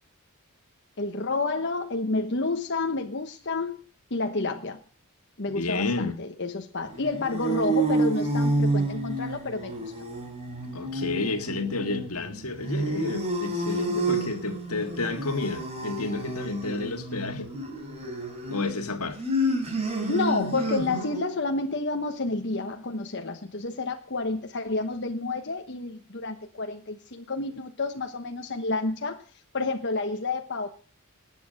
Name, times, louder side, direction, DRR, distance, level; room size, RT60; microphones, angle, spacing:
voice 1, 1.0-3.8 4.1-4.8 5.4-9.9 20.1-29.2 29.5-30.7, left 3 dB, 55° left, 1.2 m, -30 dB
voice 2, 5.5-6.2 10.7-17.5 18.5-19.2, left 3 dB, 80° left, 1.9 m, -31 dB
sound 1, 6.9-21.4, right 1 dB, 30° right, 4.1 m, -29 dB
20.0 x 8.5 x 6.6 m
head